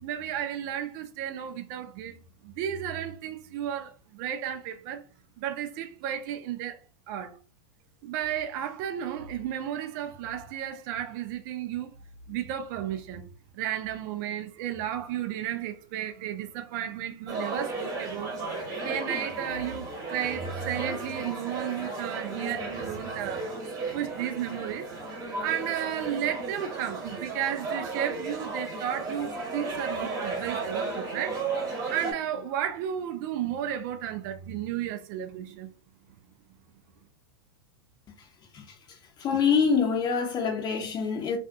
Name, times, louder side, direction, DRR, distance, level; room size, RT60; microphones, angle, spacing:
voice 1, 0.0-2.2 2.4-5.0 5.4-6.8 7.1-7.3 8.0-11.9 12.3-13.3 13.5-18.3 18.8-23.5 23.9-24.9 25.4-31.4 31.9-35.7, right 10 dB, 50° right, 0.5 m, -33 dB
sound 1, 17.3-32.1, right 3 dB, 25° right, 1.1 m, -34 dB
voice 2, 39.2-41.4, left 6 dB, 30° left, 0.7 m, -25 dB
2.5 x 2.3 x 2.5 m
hypercardioid pair, 100°, 13 cm